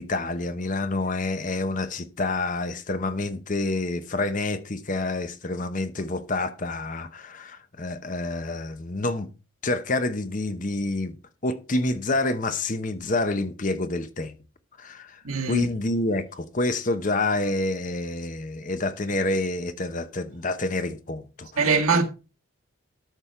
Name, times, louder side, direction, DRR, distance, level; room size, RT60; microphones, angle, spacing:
voice 1, 0.0-9.3 9.6-11.2 11.4-14.3 14.8-15.2 15.5-21.7, left 2 dB, 35° left, 0.8 m, -28 dB
voice 2, 15.2-15.7 21.6-22.0, right 4 dB, 85° right, 1.6 m, -22 dB
13.0 x 5.4 x 4.4 m
head